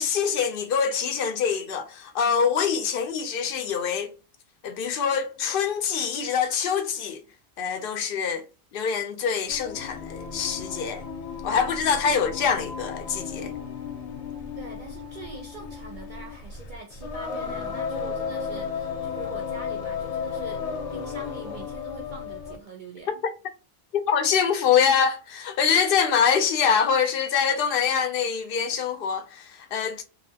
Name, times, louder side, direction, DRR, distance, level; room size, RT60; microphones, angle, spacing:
voice 1, 0.0-4.1 4.6-7.2 7.6-8.4 8.7-11.0 11.4-13.5 23.9-30.0, left 7 dB, 60° left, 0.7 m, -24 dB
Singing, 9.5-22.7, left 6 dB, 85° left, 0.9 m, -34 dB
voice 2, 14.6-23.2, right 3 dB, 55° right, 0.6 m, -43 dB
2.7 x 2.0 x 2.7 m
omnidirectional pair, 1.2 m